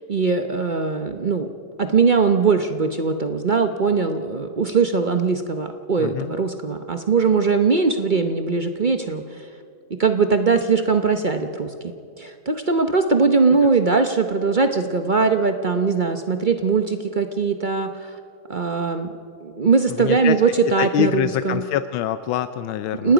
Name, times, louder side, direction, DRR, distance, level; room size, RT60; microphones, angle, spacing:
voice 1, 0.1-1.5 1.8-9.4 9.9-11.7 12.2-18.2 18.5-19.1 19.4-21.6 23.0-23.1, right 4 dB, 55° right, 7 dB, 0.5 m, -20 dB
voice 2, 6.0-6.3 19.9-20.4 20.8-23.1, left 11 dB, 90° left, 11 dB, 1.4 m, -25 dB
29.5 x 18.5 x 5.1 m, 2.4 s
omnidirectional pair, 2.1 m